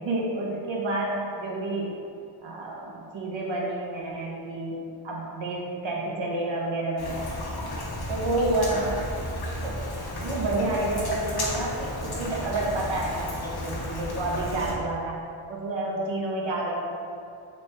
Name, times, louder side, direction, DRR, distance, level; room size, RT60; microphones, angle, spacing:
voice 1, 0.0-1.9 2.4-4.8 5.0-7.3 8.1-9.0 9.6-9.8 10.2-15.2 15.5-16.8, right 2 dB, 65° right, -2 dB, 0.9 m, -29 dB
Rain, 7.0-14.7, left 1 dB, 50° left, 0.9 m, -33 dB
4.2 x 3.2 x 3.3 m, 2.4 s
cardioid pair, 60°, 48 cm